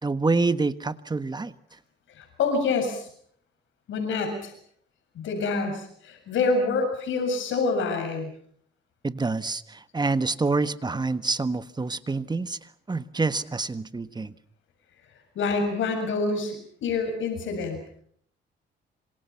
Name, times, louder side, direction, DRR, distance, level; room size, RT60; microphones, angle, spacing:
voice 1, 0.0-1.5 9.0-12.6 12.9-14.3, right 3 dB, 20° right, 13 dB, 1.5 m, -27 dB
voice 2, 2.1-3.1 3.9-4.5 5.2-8.3 15.4-17.8, left 4 dB, 75° left, 6 dB, 7.1 m, -27 dB
26.5 x 26.5 x 5.8 m, 0.63 s
cardioid pair, 90°, 20 cm